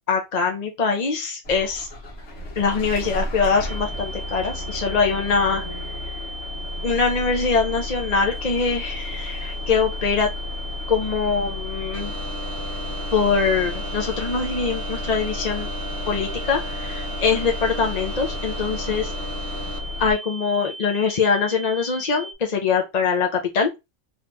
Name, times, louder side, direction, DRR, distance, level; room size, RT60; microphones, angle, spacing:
voice 1, 0.1-1.9 2.6-5.8 6.0-6.1 6.8-10.3 10.9-12.1 13.1-15.7 16.1-19.1 20.0-23.7, left 5 dB, 45° left, 2 dB, 0.6 m, -23 dB
Bus / Engine starting, 1.4-20.1, left 2 dB, 75° left, 1.3 m, -33 dB
sound 1, 3.7-22.3, right 2 dB, 55° right, 1.0 m, -37 dB
sound 2, 11.9-19.8, right 2 dB, 35° right, 0.7 m, -36 dB
2.9 x 2.7 x 3.3 m, 0.22 s
omnidirectional pair, 1.2 m